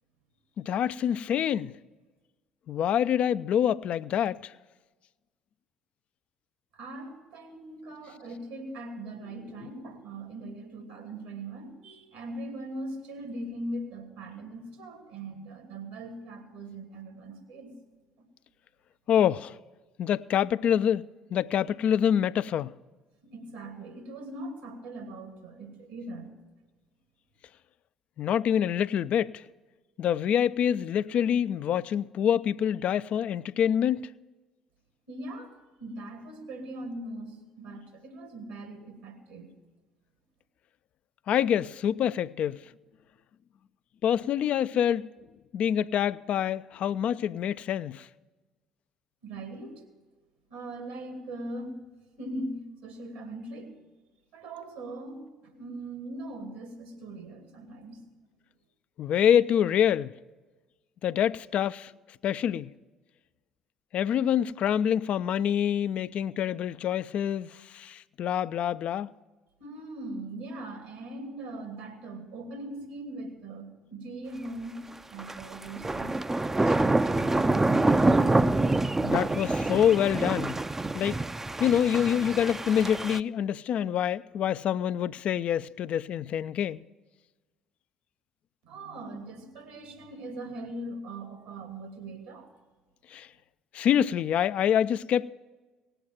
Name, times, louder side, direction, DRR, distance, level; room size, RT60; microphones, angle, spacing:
voice 1, 0.6-1.7 2.7-4.5 19.1-19.5 20.0-21.0 21.3-22.7 28.2-29.4 30.0-34.1 41.3-42.6 44.0-45.1 45.5-48.1 59.0-60.1 61.0-61.9 62.2-62.7 63.9-69.1 79.0-80.6 80.9-81.2 81.6-86.8 93.1-93.3 93.7-95.3, left 9 dB, 50° left, 0.3 m, -26 dB
voice 2, 6.7-17.7 18.2-18.3 23.2-26.3 35.1-39.5 49.2-49.8 50.5-51.8 52.2-53.7 54.3-58.0 69.6-74.8 75.1-76.2 76.5-77.8 88.6-92.5, right 1 dB, 75° right, 2.2 m, -40 dB
sound 1, 75.2-83.2, right 2 dB, 15° right, 0.4 m, -26 dB
18.0 x 7.9 x 7.4 m
figure-of-eight pair, 55°, 3 cm